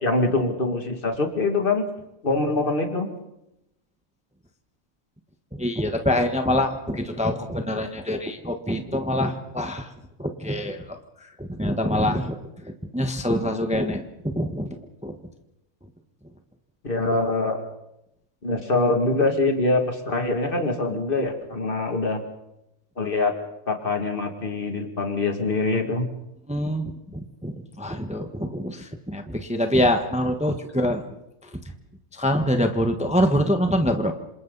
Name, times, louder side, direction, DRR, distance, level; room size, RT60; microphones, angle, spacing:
voice 1, 0.0-1.8 2.2-3.1 16.8-17.6 18.4-22.2 23.0-23.4 23.7-26.1, left 2 dB, 40° left, 4 dB, 2.5 m, -24 dB
voice 2, 5.6-9.9 10.2-11.0 11.4-12.4 12.9-14.7 15.0-15.1 26.5-31.0 32.1-34.1, equal, 5° right, 6 dB, 1.2 m, -25 dB
27.0 x 27.0 x 4.1 m, 0.86 s
omnidirectional pair, 1.5 m